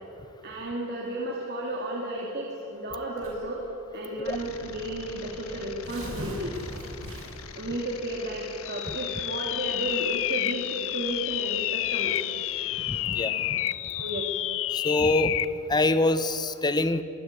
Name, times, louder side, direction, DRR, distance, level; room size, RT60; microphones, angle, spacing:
voice 1, 0.4-3.6 3.9-6.5 7.6-12.2 13.9-14.3, right 1 dB, 50° right, -2 dB, 2.6 m, -33 dB
Tearing, 3.2-3.6 4.4-4.5 4.8-4.9 5.6-7.5, equal, 75° right, 6.9 m, -39 dB
sound 1, 4.2-13.7, left 5 dB, 80° left, 1.4 m, -44 dB
sound 2, 8.6-15.6, left 15 dB, 65° left, 0.5 m, -30 dB
voice 2, 12.9-13.3 14.7-15.4 15.7-17.0, left 2 dB, 20° left, 12 dB, 0.9 m, -24 dB
24.0 x 16.0 x 9.7 m, 2.9 s
head